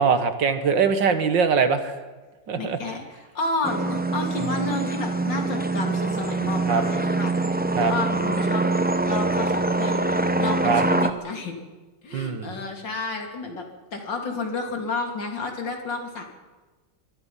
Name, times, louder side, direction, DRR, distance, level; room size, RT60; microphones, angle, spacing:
voice 1, 0.0-1.9 2.5-2.8 6.7-6.8 7.8-7.9 10.6-10.8 12.1-12.5, right 6 dB, 80° right, 10 dB, 2.2 m, -22 dB
voice 2, 2.6-8.7 9.1-11.6 12.0-16.3, left 3 dB, 80° left, 3 dB, 3.7 m, -31 dB
sound 1, 3.6-11.1, right 2 dB, 15° right, 0.3 m, -24 dB
24.5 x 21.5 x 5.8 m, 1.2 s
omnidirectional pair, 1.9 m